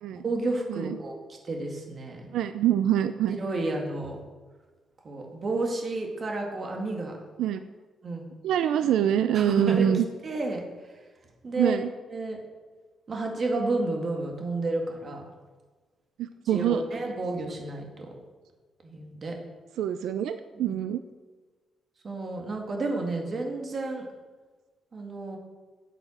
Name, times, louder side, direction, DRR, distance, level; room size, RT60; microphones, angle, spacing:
voice 1, 0.1-1.2 1.4-2.2 3.3-4.2 5.0-7.1 8.0-8.3 9.3-10.6 11.4-11.8 12.1-12.4 13.1-15.3 16.5-18.1 18.8-19.3 20.6-20.7 22.0-24.0 24.9-25.4, right 2 dB, 35° right, 1 dB, 2.1 m, -31 dB
voice 2, 2.3-3.4 7.4-7.6 8.4-10.1 11.6-11.9 16.2-16.8 19.8-21.0, right 10 dB, 85° right, 10 dB, 0.5 m, -25 dB
9.2 x 8.0 x 7.3 m, 1.3 s
cardioid pair, 160°, 0 cm